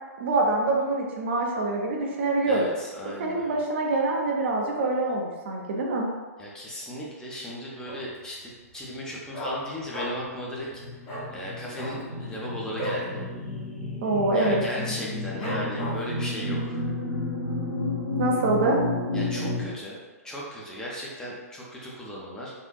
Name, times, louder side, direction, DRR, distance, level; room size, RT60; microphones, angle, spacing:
voice 1, 0.2-2.7 3.2-6.1 14.0-14.6 18.2-18.8, right 2 dB, 45° right, 0 dB, 0.5 m, -25 dB
voice 2, 2.5-3.6 6.4-10.7 10.9-11.0 11.3-13.2 14.3-16.8 19.1-20.0 20.2-22.5, equal, 5° left, -5 dB, 0.5 m, -36 dB
Dog, 7.8-8.3 8.6-8.7 8.9-10.4 10.6-10.8 11.0-11.3 11.7-13.1 13.4-13.6 13.9-14.3 14.7-14.8 15.4-16.2 16.7-16.8, right 1 dB, 30° left, 1.0 m, -35 dB
sound 1, 9.8-19.6, left 2 dB, 60° left, 1.1 m, -32 dB
3.7 x 2.5 x 2.3 m, 1.3 s
figure-of-eight pair, 115°, 8 cm